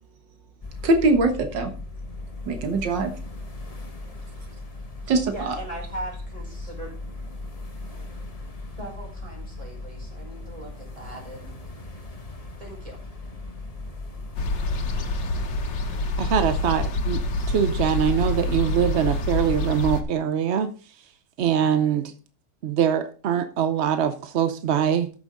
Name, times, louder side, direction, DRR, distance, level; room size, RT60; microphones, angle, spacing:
sound 1, 0.6-19.5, left 2 dB, 25° left, 1.2 m, -38 dB
voice 1, 0.8-1.7 2.5-3.1 5.1-5.6, right 2 dB, 85° right, 1.9 m, -22 dB
voice 2, 5.0-6.9 8.8-11.5 12.6-13.0, right 1 dB, 20° right, 4.9 m, -39 dB
sound 2, 14.4-20.0, left 2 dB, 85° left, 2.0 m, -26 dB
voice 3, 16.2-17.2 17.5-20.7 21.4-22.1 22.6-25.1, right 8 dB, 60° right, 0.7 m, -23 dB
13.5 x 7.0 x 3.8 m
omnidirectional pair, 1.9 m